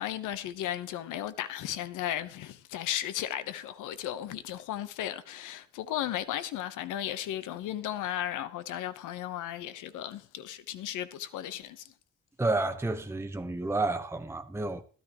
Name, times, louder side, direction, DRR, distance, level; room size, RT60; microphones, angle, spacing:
voice 1, 0.0-11.9, left 12 dB, 90° left, 1.0 m, -35 dB
voice 2, 12.4-14.8, right 2 dB, 10° right, 1.0 m, -30 dB
13.0 x 13.0 x 3.0 m
cardioid pair, 90°, 30 cm